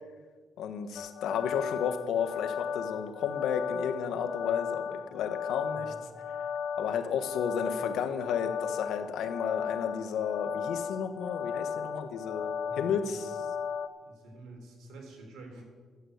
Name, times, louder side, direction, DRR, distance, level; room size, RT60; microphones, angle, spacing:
voice 1, 0.6-5.9 6.8-13.4, left 7 dB, 80° left, 9 dB, 1.2 m, -32 dB
sound 1, 1.0-13.9, left 7 dB, 65° left, 0.8 m, -36 dB
voice 2, 5.7-6.1 12.7-13.2 14.0-15.6, right 2 dB, 80° right, 1 dB, 3.7 m, -48 dB
12.0 x 8.5 x 8.0 m, 1.5 s
cardioid pair, 90°, 0 cm